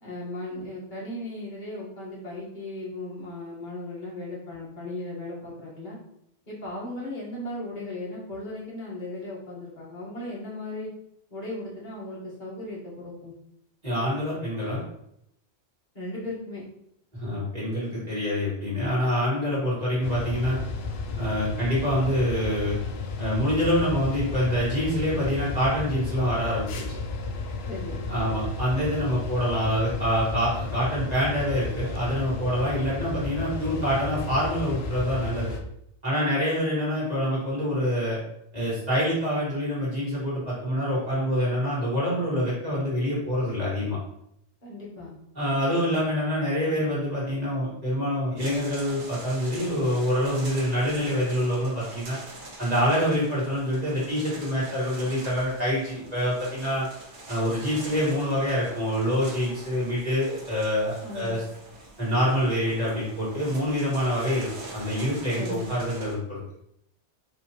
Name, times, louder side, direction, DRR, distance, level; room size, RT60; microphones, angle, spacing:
voice 1, 0.0-6.0 6.5-10.9 11.3-13.3 15.9-16.6 27.7-28.0 44.6-45.1 61.0-61.4 65.3-65.7, left 1 dB, 45° left, -6 dB, 1.5 m, -36 dB
voice 2, 13.8-14.8 17.1-20.6 21.2-22.8 23.2-26.8 28.1-35.5 36.0-38.2 38.5-44.0 45.4-52.2 52.6-56.9 57.3-61.4 62.0-64.5 64.7-66.4, equal, 35° right, -8 dB, 1.7 m, -26 dB
sound 1, 20.0-35.6, left 3 dB, 65° left, 0.8 m, -33 dB
sound 2, 48.4-66.1, right 2 dB, 75° right, 1.2 m, -44 dB
4.1 x 2.8 x 2.9 m, 0.75 s
omnidirectional pair, 1.2 m